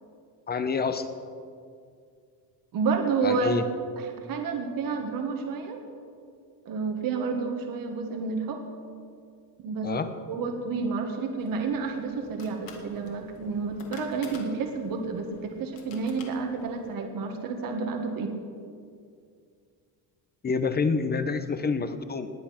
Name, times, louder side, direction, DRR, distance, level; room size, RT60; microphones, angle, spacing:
voice 1, 0.5-1.1 3.2-3.6 9.8-10.1 20.4-22.3, left 4 dB, 25° left, 10 dB, 0.9 m, -27 dB
voice 2, 2.7-3.5 4.0-5.8 6.7-8.6 9.6-9.9 10.3-18.3, right 4 dB, 55° right, 4 dB, 1.8 m, -30 dB
sound 1, 11.4-16.9, left 4 dB, 55° left, 2.6 m, -48 dB
20.0 x 8.6 x 5.9 m, 2.3 s
cardioid pair, 140°, 40 cm